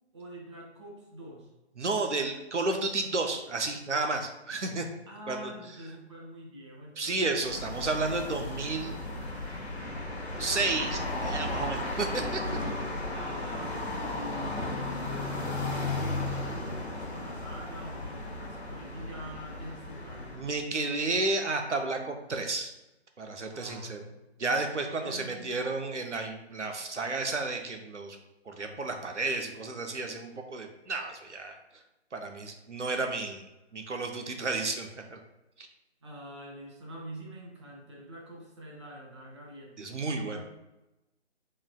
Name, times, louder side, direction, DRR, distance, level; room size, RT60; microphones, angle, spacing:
voice 1, 0.1-1.5 5.1-7.4 13.1-20.4 23.5-24.2 25.0-25.5 36.0-39.8 40.3-40.4, equal, 25° right, -2 dB, 0.6 m, -45 dB
voice 2, 1.8-4.9 5.3-5.5 7.0-9.0 10.4-12.4 20.3-22.7 23.2-24.0 24.4-28.2 28.5-31.5 32.1-33.4 33.7-35.2 35.6-35.7 39.8-40.4, right 3 dB, 90° right, 4 dB, 0.6 m, -32 dB
sound 1, 7.3-20.6, left 2 dB, 65° left, 1.0 m, -35 dB
3.7 x 3.1 x 2.3 m, 0.98 s
figure-of-eight pair, 145°, 34 cm